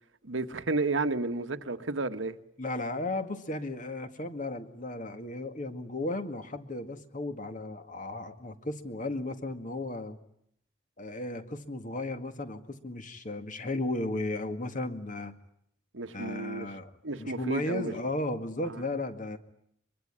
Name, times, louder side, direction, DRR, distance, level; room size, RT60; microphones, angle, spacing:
voice 1, 0.2-2.4 15.9-16.7 17.0-17.9 18.6-18.8, right 3 dB, 85° right, 1.4 m, -32 dB
voice 2, 2.6-10.2 11.0-15.4 16.1-19.4, left 2 dB, 45° left, 2.1 m, -35 dB
24.5 x 23.0 x 9.9 m
head